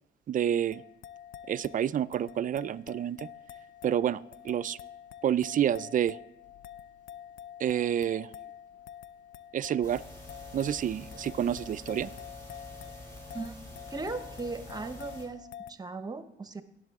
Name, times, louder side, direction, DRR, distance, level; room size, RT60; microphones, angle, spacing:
voice 1, 0.3-0.8 1.5-3.3 3.8-4.8 5.2-6.2 7.6-8.3 9.5-10.0 10.5-12.1, right 10 dB, 45° right, 16 dB, 0.4 m, -29 dB
sound 1, 0.7-15.7, left 10 dB, 85° left, 0.4 m, -48 dB
sound 2, 9.8-15.2, left 1 dB, 15° left, 3.4 m, -47 dB
voice 2, 13.9-16.6, right 3 dB, 20° right, 11 dB, 0.8 m, -38 dB
18.5 x 6.7 x 3.5 m, 0.78 s
cardioid pair, 90°, 20 cm